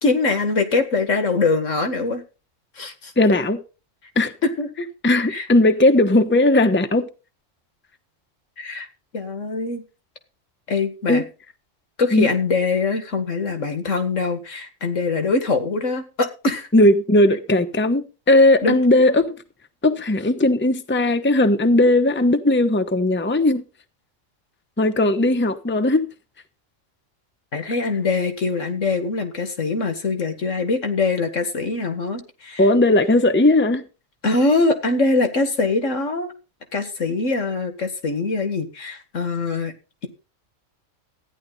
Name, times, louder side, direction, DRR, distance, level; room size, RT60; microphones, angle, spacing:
voice 1, 0.0-2.2 2.8-3.1 4.4-4.9 5.3-5.5 8.6-8.9 9.1-9.8 10.7-11.2 12.0-16.7 18.6-18.8 27.5-32.7 34.2-36.3 36.7-39.7, left 3 dB, 75° left, 2.2 m, -23 dB
voice 2, 3.2-3.6 4.2-4.3 5.0-7.1 11.1-11.2 12.1-12.3 16.7-19.4 19.8-23.6 24.8-26.1 32.6-33.8, left 1 dB, 10° left, 0.9 m, -17 dB
14.0 x 10.5 x 4.0 m
omnidirectional pair, 1.3 m